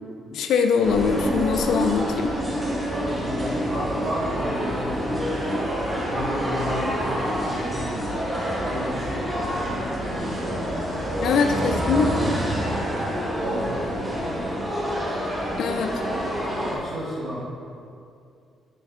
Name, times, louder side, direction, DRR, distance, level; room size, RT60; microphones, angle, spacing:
voice 1, 0.3-2.3 11.2-12.1 15.6-16.0, left 6 dB, 75° left, 5 dB, 0.5 m, -22 dB
sound 1, 0.8-16.7, equal, 15° right, 1.5 m, -27 dB
voice 2, 2.9-5.5 5.9-8.2 8.6-14.7 15.4-15.8 16.1-17.4, equal, 45° right, -9 dB, 1.6 m, -33 dB
6.3 x 5.4 x 3.8 m, 2.4 s
cardioid pair, 90°, 0 cm